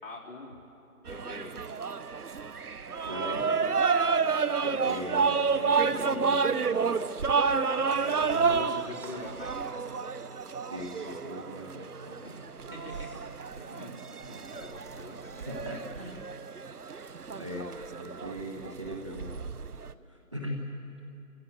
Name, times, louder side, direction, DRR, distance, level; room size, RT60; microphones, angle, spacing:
voice 1, 0.0-0.5 1.1-1.5 7.4-9.9 12.2-13.1 13.5-15.5, left 2 dB, 40° left, -5 dB, 4.0 m, -43 dB
sound 1, 1.1-19.9, right 5 dB, 85° right, 0.9 m, -30 dB
voice 2, 3.0-3.7 4.6-6.9 10.7-12.3 15.4-16.3 17.3-17.7 18.0-19.5 20.1-20.7, equal, 20° right, -1 dB, 0.9 m, -39 dB
24.0 x 15.5 x 7.9 m, 2.9 s
figure-of-eight pair, 160°, 44 cm